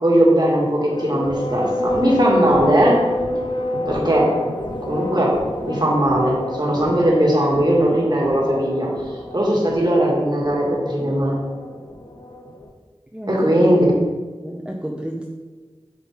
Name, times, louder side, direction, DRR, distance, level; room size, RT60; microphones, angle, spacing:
voice 1, 0.0-3.0 3.9-4.4 4.8-5.4 5.6-8.9 9.3-11.4 13.3-13.9, right 1 dB, 45° right, -3 dB, 1.9 m, -18 dB
sound 1, 0.8-12.7, left 1 dB, 50° left, 0.8 m, -28 dB
voice 2, 13.1-13.8 14.4-15.3, equal, 10° right, -1 dB, 0.8 m, -30 dB
8.1 x 5.5 x 3.6 m, 1.4 s
wide cardioid pair, 45°, 10 cm